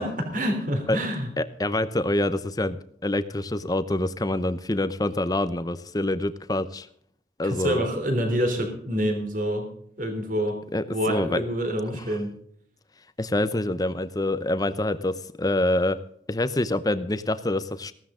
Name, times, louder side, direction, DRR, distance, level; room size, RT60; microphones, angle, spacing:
voice 1, 0.0-1.3 7.4-9.7 10.0-10.6 10.9-12.3, equal, 45° right, 4 dB, 3.4 m, -27 dB
voice 2, 1.4-6.9 7.4-7.9 10.7-11.4 11.9-12.2 13.2-16.0 16.3-17.9, left 1 dB, 20° left, 13 dB, 0.7 m, -26 dB
15.5 x 13.5 x 3.8 m, 0.65 s
head